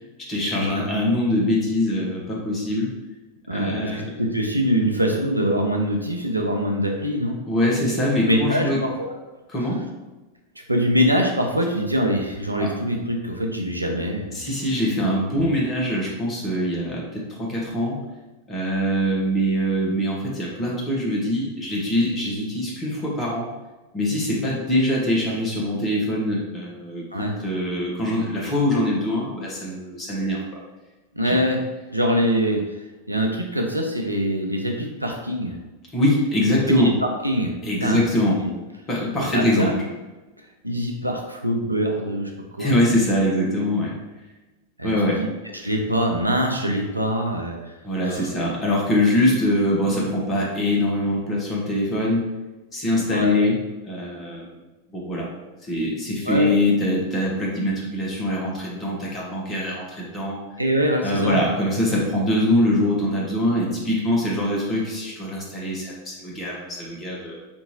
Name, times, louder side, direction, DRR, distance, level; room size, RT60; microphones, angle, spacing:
voice 1, 0.3-2.9 3.5-4.0 7.5-8.8 9.5-9.9 12.6-12.7 14.3-18.0 18.5-23.5 23.9-30.4 31.2-31.4 35.9-36.9 37.6-38.4 38.9-39.7 42.6-44.0 44.8-45.2 47.8-52.3 52.7-53.6 53.9-54.6 54.9-55.3 55.6-60.4 61.0-67.3, left 1 dB, 25° left, -4 dB, 1.2 m, -23 dB
voice 2, 3.5-7.3 8.3-9.1 10.7-14.4 27.1-27.3 31.1-31.6 31.9-32.6 33.1-35.6 36.7-37.6 37.8-38.0 38.4-38.5 39.2-39.7 40.6-42.3 42.6-43.0 44.8-45.3 45.5-47.7 48.0-48.3 52.9-53.4 56.3-56.5 60.6-61.4, equal, 85° right, 2 dB, 0.5 m, -24 dB
4.4 x 2.7 x 2.9 m, 1.1 s
figure-of-eight pair, 90°, 0 cm